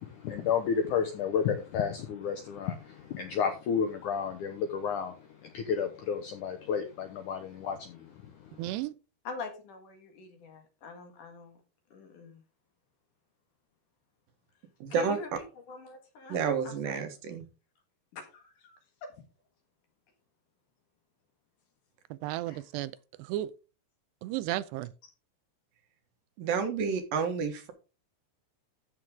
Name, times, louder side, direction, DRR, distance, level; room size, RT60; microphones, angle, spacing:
voice 1, 0.0-8.5, left 7 dB, 75° left, 1.8 m, -32 dB
voice 2, 8.6-8.9 22.1-22.9 23.2-23.5 24.2-24.9, right 15 dB, 90° right, 2.8 m, -33 dB
voice 3, 9.3-11.6 11.9-12.4 14.9-15.3 15.7-16.4 16.6-17.0 18.1-18.8 19.0-19.2 22.5-22.6, left 3 dB, 55° left, 2.9 m, -42 dB
voice 4, 14.8-15.2 16.3-17.5 26.4-27.7, right 6 dB, 65° right, 2.7 m, -30 dB
13.0 x 6.5 x 3.6 m
omnidirectional pair, 4.8 m